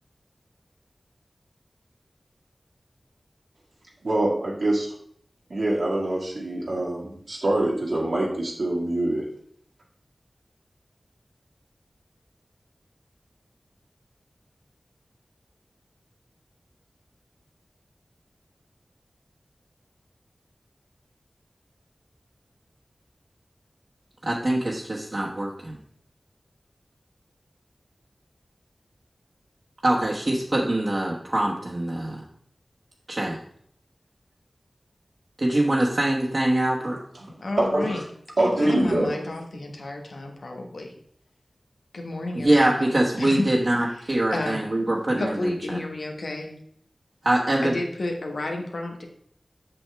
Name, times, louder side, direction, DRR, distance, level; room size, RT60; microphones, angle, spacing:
voice 1, 4.0-4.9 5.5-9.2 37.2-37.3 37.6-38.0 38.4-39.2, right 1 dB, 80° right, -4 dB, 1.9 m, -24 dB
voice 2, 24.2-25.8 29.8-32.2 33.1-33.4 35.4-37.0 42.3-45.8 47.2-47.8, right 1 dB, 45° right, -4 dB, 1.2 m, -23 dB
voice 3, 37.4-38.0 38.6-40.9 41.9-43.5 44.3-44.7 45.2-46.5 47.6-49.1, left 2 dB, 85° left, 3 dB, 1.3 m, -31 dB
7.8 x 6.2 x 3.4 m, 0.64 s
wide cardioid pair, 55°, 0 cm